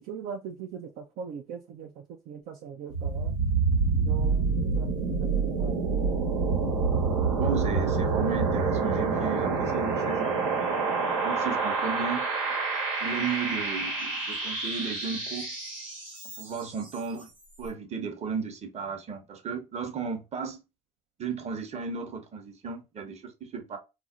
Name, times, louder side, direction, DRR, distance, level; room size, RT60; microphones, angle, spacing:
voice 1, 0.0-3.3 4.1-6.2, right 7 dB, 60° right, 0.5 m, -41 dB
sound 1, 2.9-16.7, right 4 dB, 85° right, 1.1 m, -27 dB
voice 2, 7.3-10.8 11.2-12.3 13.0-15.5 16.4-17.3 17.6-20.6 21.2-23.8, right 5 dB, 40° right, 0.8 m, -34 dB
2.4 x 2.0 x 3.6 m
hypercardioid pair, 65°, 17 cm